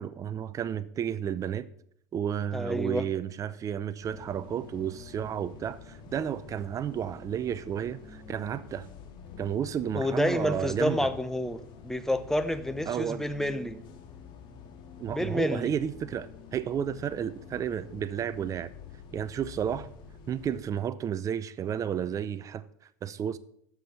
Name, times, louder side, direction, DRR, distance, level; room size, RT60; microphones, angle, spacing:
voice 1, 0.0-1.7 2.1-8.9 9.4-11.1 12.9-13.3 15.0-18.7 19.1-19.9 20.3-22.6 23.0-23.4, right 9 dB, 35° right, 0.5 m, -32 dB
voice 2, 2.5-3.1 9.9-13.8 15.1-15.7, left 1 dB, 5° left, 0.8 m, -29 dB
sound 1, 4.0-20.6, left 6 dB, 55° left, 1.8 m, -48 dB
8.1 x 6.2 x 6.9 m
supercardioid pair, 95°, 10 cm